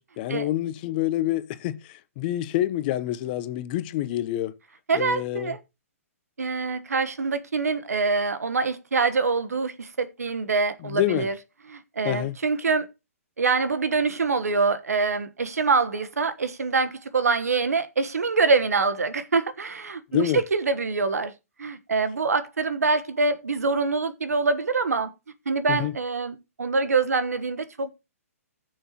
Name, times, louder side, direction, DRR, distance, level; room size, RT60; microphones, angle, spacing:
voice 1, 0.0-4.6 4.9-5.6 10.8-11.3 12.0-12.4 20.1-20.4 25.7-25.9, left 14 dB, 40° left, 0.8 m, -27 dB
voice 2, 4.9-5.6 6.4-11.3 11.7-12.9 13.4-21.3 21.6-25.1 25.4-27.9, right 4 dB, 80° right, 1.3 m, -25 dB
15.5 x 6.5 x 3.0 m
hypercardioid pair, 130°, 8 cm